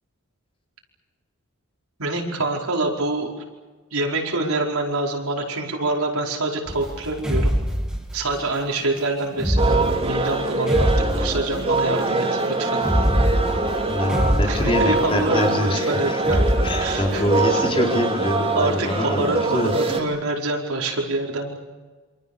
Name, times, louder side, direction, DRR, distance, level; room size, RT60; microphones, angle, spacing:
voice 1, 2.0-3.3 3.9-7.6 8.1-12.8 14.5-17.2 18.5-21.6, right 2 dB, 85° right, 0 dB, 5.1 m, -26 dB
sound 1, 6.7-8.4 9.3-11.9 12.8-15.3 16.2-17.4, equal, 5° right, 2.5 m, -24 dB
sound 2, 9.6-20.0, right 2 dB, 25° right, 3.1 m, -24 dB
voice 2, 13.9-16.2 16.6-20.0, left 1 dB, 25° left, 1 dB, 4.0 m, -25 dB
27.5 x 25.0 x 7.0 m, 1.3 s
head